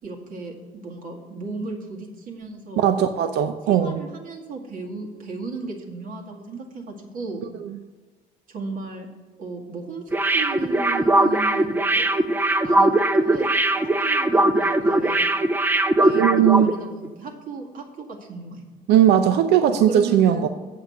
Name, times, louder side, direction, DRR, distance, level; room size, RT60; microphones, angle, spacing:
voice 1, 0.0-3.0 3.7-7.4 8.5-9.1 9.4-12.1 12.6-13.5 13.8-15.2 16.0-18.6 19.9-20.5, right 3 dB, 55° right, -1 dB, 2.1 m, -35 dB
voice 2, 2.8-4.0 16.2-16.7 18.9-20.5, right 10 dB, 80° right, 9 dB, 0.6 m, -18 dB
sound 1, 10.1-16.7 17.0-17.1, right 1 dB, 10° right, 0.5 m, -20 dB
7.6 x 5.8 x 7.7 m, 1.3 s
cardioid pair, 110°, 17 cm